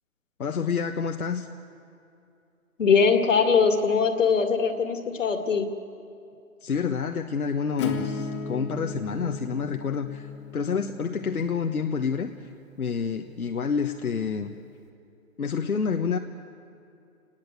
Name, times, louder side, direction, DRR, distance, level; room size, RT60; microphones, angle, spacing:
voice 1, 0.4-1.5 6.6-12.3 12.8-14.5 15.4-16.2, left 6 dB, 80° left, 5 dB, 1.3 m, -28 dB
voice 2, 2.8-5.7, left 5 dB, 60° left, 7 dB, 2.3 m, -21 dB
Acoustic guitar / Strum, 7.8-13.3, left 5 dB, 20° left, 1.4 m, -36 dB
28.0 x 19.5 x 8.2 m, 2.6 s
hypercardioid pair, 155°, 43 cm